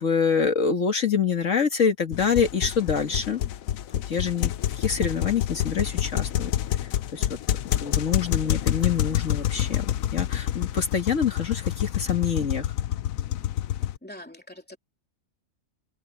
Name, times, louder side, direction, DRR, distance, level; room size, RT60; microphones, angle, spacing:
voice 1, 0.0-3.4 4.0-6.5 6.8-7.4 7.8-12.7, left 6 dB, 65° left, 1.9 m, -26 dB
sound 1, 2.1-14.0, left 11 dB, 80° left, 1.1 m, -28 dB
voice 2, 14.0-14.8, left 1 dB, 5° left, 3.0 m, -43 dB
omnidirectional pair, 1.4 m